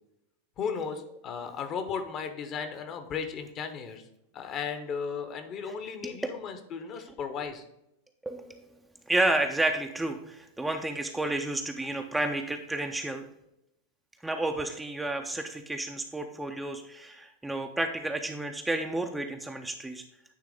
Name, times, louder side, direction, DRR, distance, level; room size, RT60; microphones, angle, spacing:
voice 1, 0.6-4.0 4.3-7.6, left 6 dB, 35° left, 7 dB, 0.9 m, -35 dB
voice 2, 5.6-6.2 8.2-8.6 9.1-13.3 14.2-20.0, right 2 dB, 5° right, 4 dB, 0.5 m, -31 dB
9.5 x 3.4 x 4.9 m, 0.83 s
figure-of-eight pair, 90°, 0 cm